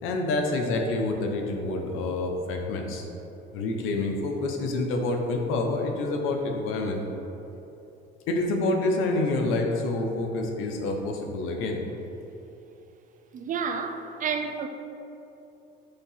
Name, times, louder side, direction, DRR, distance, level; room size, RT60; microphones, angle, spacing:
voice 1, 0.0-3.1 3.5-7.0 8.3-11.8, left 2 dB, 85° left, 2 dB, 0.8 m, -27 dB
voice 2, 13.3-14.7, right 6 dB, 40° right, 7 dB, 0.5 m, -30 dB
6.6 x 2.8 x 5.7 m, 2.9 s
cardioid pair, 115°, 21 cm